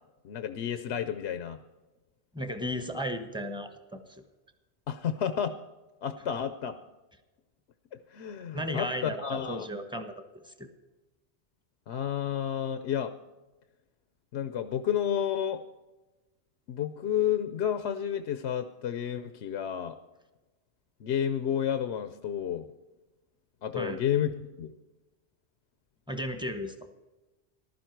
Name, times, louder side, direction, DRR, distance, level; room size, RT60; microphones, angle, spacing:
voice 1, 0.2-1.6 4.9-5.5 6.0-6.8 7.9-9.7 11.9-13.1 14.3-15.6 16.7-20.0 21.0-22.7 23.6-24.7, left 9 dB, 80° left, 10 dB, 0.9 m, -31 dB
voice 2, 2.3-4.0 8.5-10.1 10.6-10.7 23.7-24.0 26.1-26.7, equal, 5° right, 7 dB, 1.1 m, -34 dB
15.0 x 12.0 x 4.6 m, 1.1 s
omnidirectional pair, 1.1 m